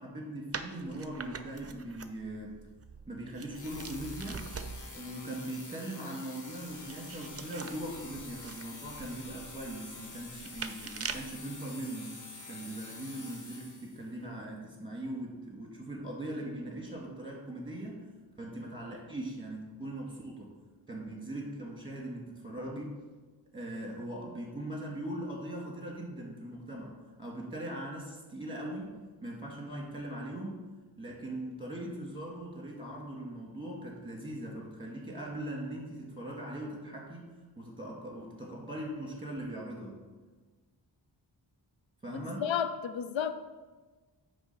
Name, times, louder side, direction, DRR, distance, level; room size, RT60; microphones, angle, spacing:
voice 1, 0.0-2.6 3.1-4.5 4.9-12.2 12.5-18.1 18.4-20.6 20.9-22.9 23.5-30.7 31.0-40.1 42.0-42.5, right 1 dB, 10° right, 2.3 m, -40 dB
sound 1, 0.5-5.0 6.5-11.4, right 5 dB, 35° right, 0.6 m, -44 dB
sound 2, 3.5-14.1, left 3 dB, 40° left, 1.2 m, -47 dB
voice 2, 42.1-43.3, left 8 dB, 80° left, 0.6 m, -32 dB
9.5 x 3.5 x 6.9 m
wide cardioid pair, 90°, 45 cm